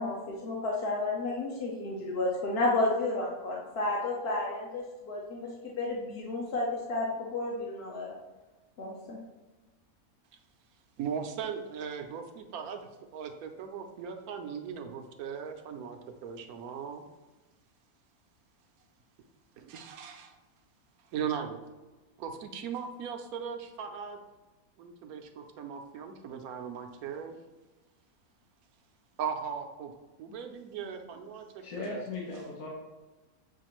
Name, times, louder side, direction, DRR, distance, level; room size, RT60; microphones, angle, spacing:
voice 1, 0.0-8.2 8.8-9.2, left 2 dB, 55° left, -3 dB, 0.8 m, -32 dB
voice 2, 11.0-17.0 19.6-20.4 21.0-21.6 22.2-24.2 24.8-27.3 29.2-29.9 30.2-32.0, right 7 dB, 80° right, 5 dB, 1.1 m, -38 dB
voice 3, 31.6-32.7, left 3 dB, 70° left, -5 dB, 1.3 m, -38 dB
7.1 x 2.5 x 3.0 m, 1.1 s
omnidirectional pair, 1.5 m